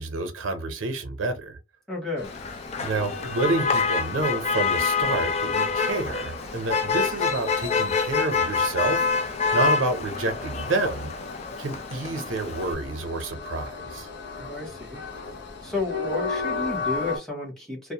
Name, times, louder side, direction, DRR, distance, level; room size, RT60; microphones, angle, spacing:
voice 1, 0.0-1.6 2.8-11.1 11.6-14.1, right 2 dB, 90° right, 0.6 m, -29 dB
voice 2, 1.9-2.4 14.3-15.0 15.6-17.9, left 3 dB, 5° left, 0.9 m, -32 dB
Train, 2.2-17.2, left 4 dB, 65° left, 0.7 m, -36 dB
Motor vehicle (road), 2.2-12.7, left 5 dB, 35° left, 0.3 m, -27 dB
2.4 x 2.1 x 2.8 m
head